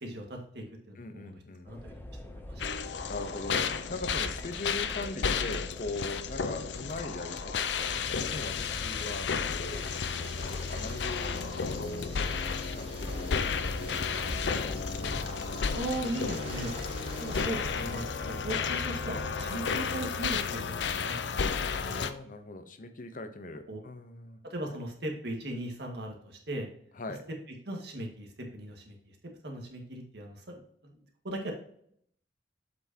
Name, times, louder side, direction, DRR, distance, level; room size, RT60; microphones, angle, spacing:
voice 1, 0.0-2.8 15.7-16.7 17.2-22.0 23.7-23.8 24.4-26.7 27.1-27.2 27.7-29.2 29.4-31.5, right 1 dB, 70° right, 1 dB, 1.8 m, -39 dB
voice 2, 1.0-1.7 3.1-9.9 10.3-12.4 12.8-13.4 13.8-15.2 22.0-24.4 27.0-27.3, left 2 dB, 50° left, 8 dB, 0.8 m, -41 dB
sound 1, 1.7-19.5, left 1 dB, 10° left, 0.7 m, -44 dB
sound 2, 2.6-22.1, left 6 dB, 80° left, 0.6 m, -33 dB
sound 3, 9.7-17.5, right 4 dB, 35° right, 0.5 m, -48 dB
7.7 x 6.0 x 2.8 m, 0.66 s
head